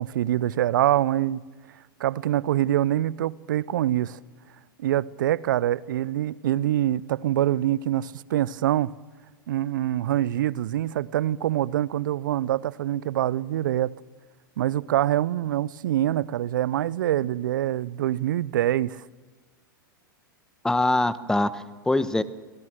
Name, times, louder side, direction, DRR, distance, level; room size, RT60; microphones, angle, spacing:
voice 1, 0.0-1.4 2.0-4.2 4.8-8.9 9.5-13.9 14.6-19.0, right 13 dB, 65° right, 0.7 m, -25 dB
voice 2, 20.6-22.2, left 2 dB, 5° left, 1.1 m, -23 dB
25.5 x 18.0 x 7.6 m
figure-of-eight pair, 95°, 11 cm